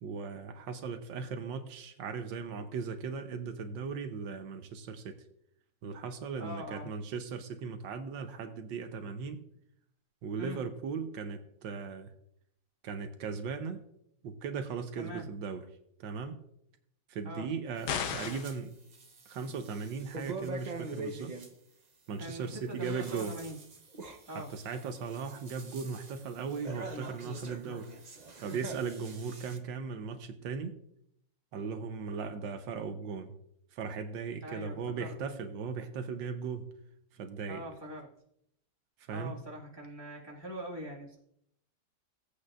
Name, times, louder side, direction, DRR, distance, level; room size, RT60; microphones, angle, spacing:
voice 1, 0.0-5.2 5.8-9.4 10.2-12.1 12.8-13.8 14.2-15.6 16.0-16.4 17.1-18.7 19.3-21.3 22.1-23.4 24.3-27.9 28.4-30.8 31.5-33.3 33.7-36.7 37.2-37.7 39.1-39.4, right 5 dB, 85° right, 7 dB, 1.5 m, -38 dB
voice 2, 6.4-6.9 10.4-10.6 15.0-15.3 17.2-17.5 22.2-23.6 24.3-24.5 34.4-35.2 37.5-38.1 39.1-41.2, right 1 dB, 15° right, -3 dB, 1.8 m, -42 dB
sound 1, 17.8-18.6 18.9-21.5 22.6-29.6, right 3 dB, 35° right, 0.7 m, -45 dB
sound 2, 17.9-18.6, left 7 dB, 75° left, 1.4 m, -34 dB
17.0 x 8.3 x 2.5 m, 0.75 s
omnidirectional pair, 2.0 m